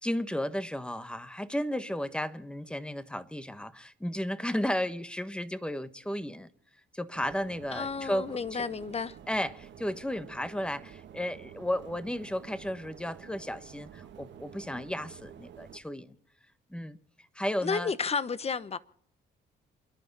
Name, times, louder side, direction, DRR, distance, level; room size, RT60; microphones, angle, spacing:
voice 1, 0.0-6.5 6.9-8.6 9.3-16.1 16.7-17.0 17.3-17.9, left 1 dB, 5° left, 1.2 m, -34 dB
sound 1, 7.1-15.8, right 9 dB, 65° right, 1.7 m, -50 dB
voice 2, 7.7-9.2 17.6-18.8, left 5 dB, 30° left, 1.0 m, -32 dB
28.5 x 11.0 x 4.1 m
cardioid pair, 90°, 20 cm